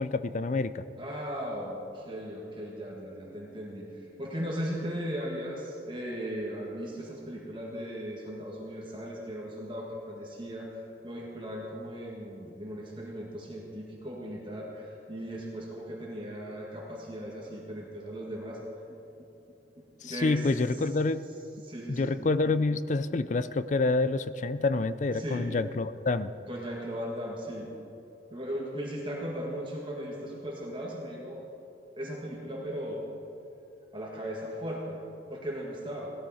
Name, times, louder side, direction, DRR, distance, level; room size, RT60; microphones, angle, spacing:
voice 1, 0.0-0.9 20.0-21.3 21.9-26.3, left 3 dB, 40° left, 14 dB, 0.4 m, -27 dB
voice 2, 1.0-18.6 18.9-19.0 19.7-20.9 21.6-22.2 25.1-25.5 26.5-27.7 28.3-31.4 32.0-33.0 33.9-35.0 35.3-36.1, equal, 25° right, -2 dB, 1.7 m, -37 dB
17.0 x 13.0 x 4.2 m, 2.8 s
head